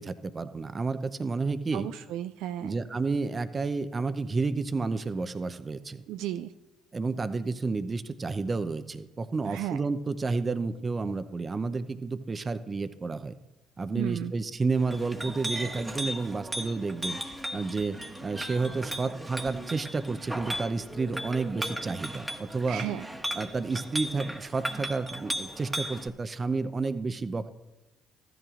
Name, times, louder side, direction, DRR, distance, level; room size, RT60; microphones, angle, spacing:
voice 1, 0.0-1.9 2.6-6.0 6.9-13.3 13.8-17.2 17.5-18.0 18.2-22.9 23.4-27.5, right 4 dB, 30° right, 13 dB, 0.7 m, -31 dB
voice 2, 1.7-2.8 6.1-6.5 9.4-9.8 14.0-14.3 22.7-23.1, right 12 dB, 70° right, 10 dB, 0.3 m, -34 dB
Chink clink, 14.8-26.1, right 1 dB, 10° right, 1.3 m, -36 dB
15.0 x 11.0 x 2.5 m, 1.0 s
hypercardioid pair, 55°, 0 cm